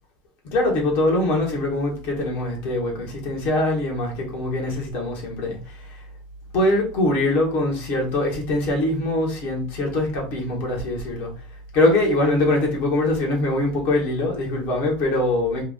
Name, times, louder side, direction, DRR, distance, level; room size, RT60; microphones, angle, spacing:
voice 1, 0.4-6.0 6.5-11.4 11.7-15.6, left 1 dB, 65° left, 1.7 m, -23 dB
3.7 x 2.6 x 3.7 m
hypercardioid pair, 95°, 4 cm